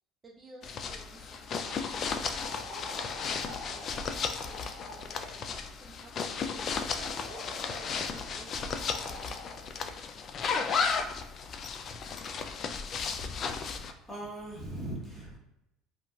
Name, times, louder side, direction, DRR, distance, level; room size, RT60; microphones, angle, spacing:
voice 1, 0.2-9.5, right 3 dB, 25° right, -1 dB, 0.5 m, -53 dB
sound 1, 0.6-13.9, left 5 dB, 45° left, 0.3 m, -34 dB
sound 2, 1.6-5.6 7.0-8.1 8.6-9.6, left 2 dB, 85° left, 0.9 m, -46 dB
voice 2, 13.8-15.4, right 1 dB, 15° left, -4 dB, 1.2 m, -40 dB
2.9 x 2.5 x 2.3 m, 0.88 s
supercardioid pair, 95°, 0 cm